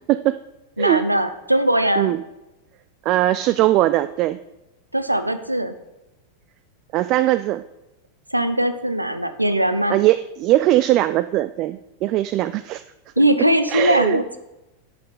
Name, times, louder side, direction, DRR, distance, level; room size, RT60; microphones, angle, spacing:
voice 1, 0.1-0.4 0.8-1.1 2.0-2.2 3.1-4.4 6.9-7.6 9.9-12.8 13.7-14.2, right 15 dB, 40° right, 14 dB, 0.3 m, -20 dB
voice 2, 0.8-2.1 4.9-5.7 8.3-10.0 13.2-14.4, right 1 dB, 85° right, 11 dB, 0.7 m, -20 dB
11.5 x 7.5 x 4.0 m, 1.0 s
figure-of-eight pair, 90°, 0 cm